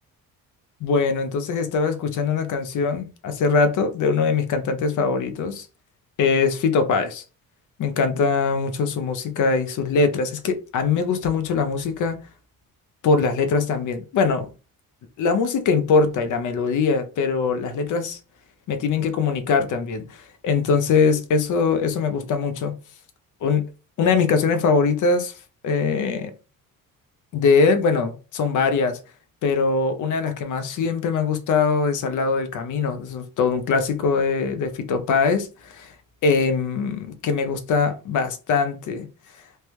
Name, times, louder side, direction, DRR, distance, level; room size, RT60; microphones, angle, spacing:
voice 1, 0.8-5.7 6.2-7.2 7.8-12.2 13.0-14.5 15.2-18.2 18.7-20.1 20.4-22.7 23.4-23.7 24.0-25.3 25.6-26.3 27.3-29.0 29.4-35.9 36.2-39.1, left 4 dB, 60° left, 0.6 m, -22 dB
3.3 x 2.1 x 2.9 m
cardioid pair, 110°, 35 cm